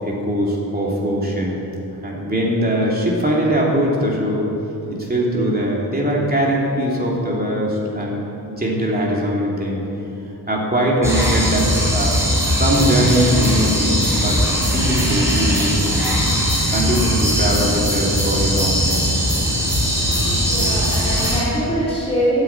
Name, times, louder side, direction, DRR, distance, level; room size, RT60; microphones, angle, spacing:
voice 1, 0.0-1.6 2.0-4.5 4.9-8.2 8.5-9.8 10.5-14.4 14.7-16.0 16.7-19.1, equal, 20° right, -4 dB, 3.0 m, -21 dB
sound 1, 11.0-21.4, equal, 5° right, 3.9 m, -19 dB
voice 2, 20.4-22.4, right 1 dB, 15° left, -9 dB, 3.8 m, -23 dB
12.5 x 9.0 x 8.8 m, 2.9 s
wide cardioid pair, 125°, 41 cm